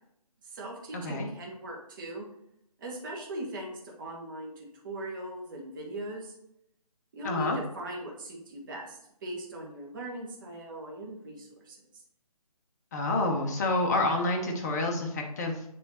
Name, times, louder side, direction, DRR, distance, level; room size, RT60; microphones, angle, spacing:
voice 1, 0.4-2.3 2.8-6.3 7.1-11.8, right 1 dB, 35° right, -1 dB, 1.5 m, -40 dB
voice 2, 0.9-1.3 7.2-7.6 12.9-15.7, left 2 dB, 25° left, 2 dB, 0.8 m, -28 dB
7.4 x 3.3 x 4.2 m, 0.78 s
figure-of-eight pair, 150°, 19 cm